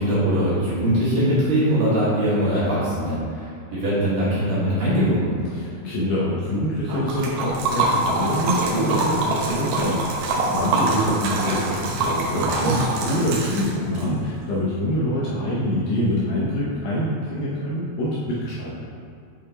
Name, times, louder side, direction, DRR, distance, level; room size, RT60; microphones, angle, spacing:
voice 1, 0.0-5.4 12.3-12.7, equal, 55° right, -11 dB, 2.7 m, -22 dB
voice 2, 5.5-18.7, equal, 75° left, -7 dB, 2.3 m, -25 dB
Liquid, 6.9-14.0, right 2 dB, 85° right, 1.9 m, -24 dB
6.7 x 6.3 x 2.9 m, 2.5 s
omnidirectional pair, 5.0 m